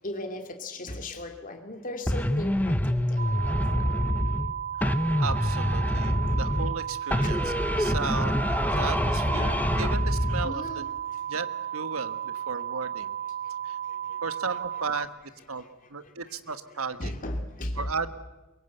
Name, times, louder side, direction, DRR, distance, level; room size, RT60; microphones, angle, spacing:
voice 1, 0.0-3.9 6.3-6.4 7.2-7.3 9.5-9.8 10.4-11.2 13.8-14.2 15.6-16.1 16.5-17.9, left 1 dB, 40° left, 4 dB, 2.7 m, -38 dB
sound 1, 2.1-4.5 4.8-6.8 7.1-10.5, left 1 dB, 5° left, 0.7 m, -26 dB
sound 2, 3.2-15.1, right 10 dB, 45° right, 1.1 m, -34 dB
voice 2, 5.2-10.9 11.2-13.1 13.6-13.8 14.2-15.1 15.5-15.6 15.9-17.1 17.8-18.1, right 4 dB, 70° right, 12 dB, 1.4 m, -35 dB
23.0 x 22.0 x 8.2 m, 1.1 s
head